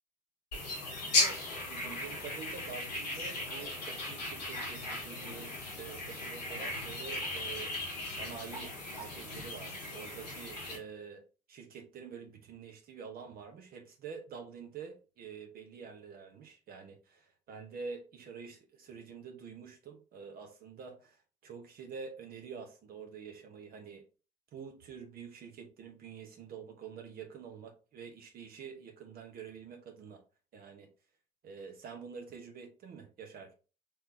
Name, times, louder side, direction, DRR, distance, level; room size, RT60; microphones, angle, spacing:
sound 1, 0.5-10.8, left 2 dB, 85° left, 1.7 m, -36 dB
voice 1, 1.0-1.4 1.7-7.7 8.1-11.2 11.5-21.2 21.4-24.0 24.5-30.2 30.5-30.9 31.4-33.5, right 6 dB, 45° right, 4 dB, 0.9 m, -47 dB
4.5 x 3.3 x 3.2 m, 0.35 s
figure-of-eight pair, 55°, 21 cm